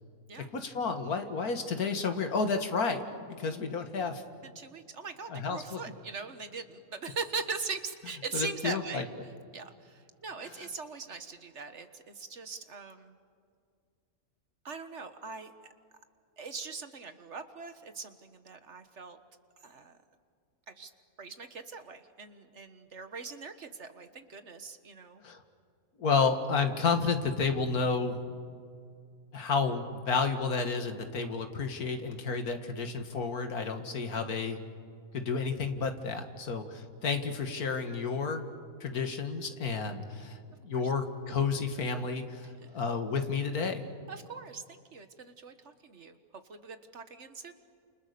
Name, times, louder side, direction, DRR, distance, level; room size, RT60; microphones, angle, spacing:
voice 1, 0.5-4.2 5.3-5.8 8.3-9.0 25.2-25.4 26.0-28.2 29.3-34.6 35.1-38.4 38.8-40.4 40.6-42.5 42.7-43.8, left 4 dB, 85° left, 6 dB, 2.3 m, -31 dB
voice 2, 4.4-13.2 14.6-15.5 16.4-19.2 19.6-20.0 20.7-20.9 21.2-25.2 40.7-40.9 42.4-42.8 44.1-46.2 46.5-47.5, right 4 dB, 50° right, 9 dB, 1.7 m, -41 dB
30.0 x 28.5 x 6.9 m, 2.2 s
omnidirectional pair, 1.5 m